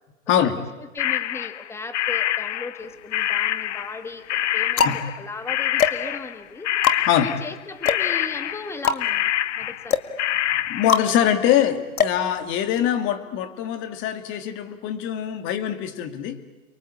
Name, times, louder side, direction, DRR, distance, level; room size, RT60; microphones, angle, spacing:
voice 1, 0.3-0.6 4.8-5.0 7.1-7.3 10.7-16.4, left 10 dB, 30° left, 10 dB, 2.2 m, -23 dB
voice 2, 0.9-6.7 7.2-9.3 9.6-10.0, left 3 dB, 5° left, 9 dB, 1.7 m, -36 dB
sound 1, 1.0-4.0 4.3-5.2 5.5-6.4 6.6-11.1, left 12 dB, 55° left, 0.8 m, -26 dB
sound 2, 2.8-3.5 4.2-13.0, left 6 dB, 85° left, 2.0 m, -26 dB
29.5 x 22.0 x 8.6 m, 1.2 s
hypercardioid pair, 145°, 42 cm